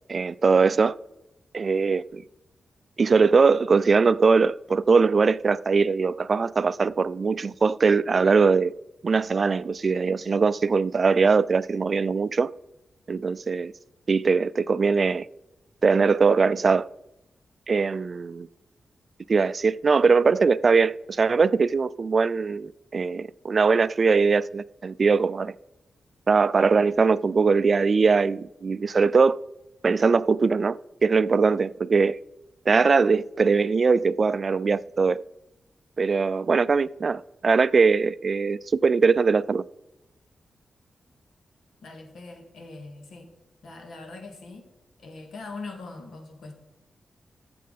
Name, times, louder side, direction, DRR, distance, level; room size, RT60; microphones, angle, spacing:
voice 1, 0.1-1.0 1.5-2.2 3.0-8.7 9.0-12.5 13.1-13.7 14.1-15.3 15.8-16.9 17.7-18.5 19.3-25.5 26.3-29.4 29.8-32.2 32.7-35.2 36.0-39.6, right 4 dB, 45° right, 0.3 m, -21 dB
voice 2, 41.8-43.3 43.6-44.7 45.0-46.5, left 3 dB, 90° left, 2.0 m, -41 dB
12.0 x 7.5 x 4.1 m
wide cardioid pair, 115°, 0 cm